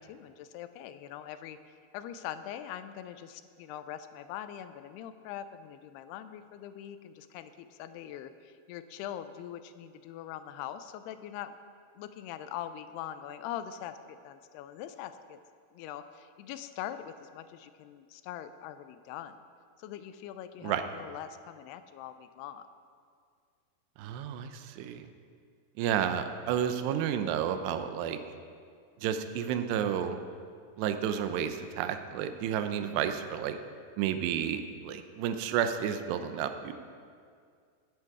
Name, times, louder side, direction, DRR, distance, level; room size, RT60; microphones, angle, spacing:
voice 1, 0.0-1.6 1.9-11.6 12.0-15.4 15.7-19.4 19.8-22.7 32.9-33.2, left 10 dB, 80° left, 11 dB, 2.6 m, -42 dB
voice 2, 24.0-25.1 25.8-28.2 29.0-30.2 30.8-33.6 34.0-36.7, right 9 dB, 85° right, 8 dB, 2.9 m, -31 dB
17.0 x 9.9 x 4.8 m, 2.2 s
omnidirectional pair, 4.8 m